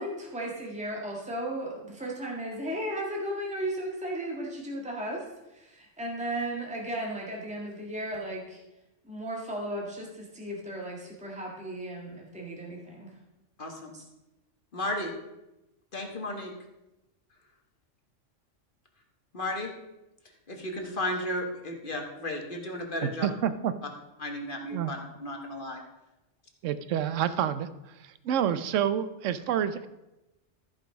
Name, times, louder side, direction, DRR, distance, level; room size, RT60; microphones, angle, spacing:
voice 1, 0.0-8.6 9.0-13.1 13.9-14.0, right 1 dB, 5° right, -2 dB, 1.7 m, -35 dB
voice 2, 13.6-13.9 14.7-15.1 15.9-16.5 19.3-19.7 20.5-23.3 24.2-25.8, left 1 dB, 45° left, 2 dB, 1.6 m, -34 dB
voice 3, 23.0-23.7 24.7-24.9 26.6-27.7 28.0-29.9, right 9 dB, 80° right, 13 dB, 1.0 m, -28 dB
14.0 x 5.4 x 5.1 m, 0.97 s
omnidirectional pair, 1.3 m